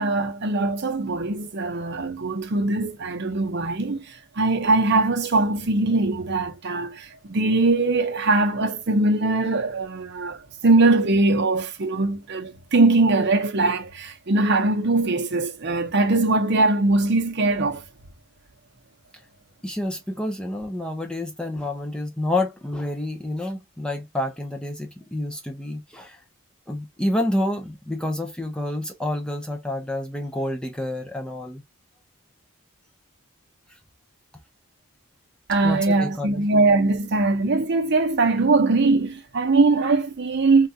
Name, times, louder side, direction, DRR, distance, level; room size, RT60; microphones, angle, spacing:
voice 1, 0.0-17.8 35.5-40.7, right 3 dB, 50° right, 0.7 m, -21 dB
voice 2, 19.6-26.2 26.7-31.6 33.7-33.8 35.6-36.4, left 1 dB, 5° left, 0.4 m, -28 dB
3.6 x 2.3 x 2.7 m
head